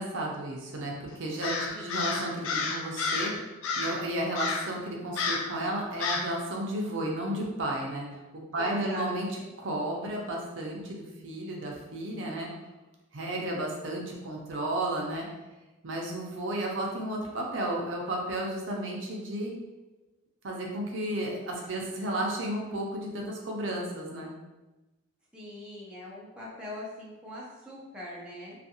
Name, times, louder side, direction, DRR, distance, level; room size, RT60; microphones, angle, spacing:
voice 1, 0.0-3.3 3.8-12.5 13.1-15.3 15.8-19.6 20.4-24.3, right 1 dB, 65° right, -1 dB, 0.5 m, -33 dB
Crow, 1.4-3.4 3.6-4.0 4.4-4.7 5.2-5.5 6.0-6.3, left 4 dB, 75° left, 0.4 m, -31 dB
voice 2, 8.6-9.1 9.4-9.6 9.9-10.0 25.3-28.6, left 1 dB, 5° right, -6 dB, 0.5 m, -42 dB
2.6 x 2.4 x 2.7 m, 1.1 s
head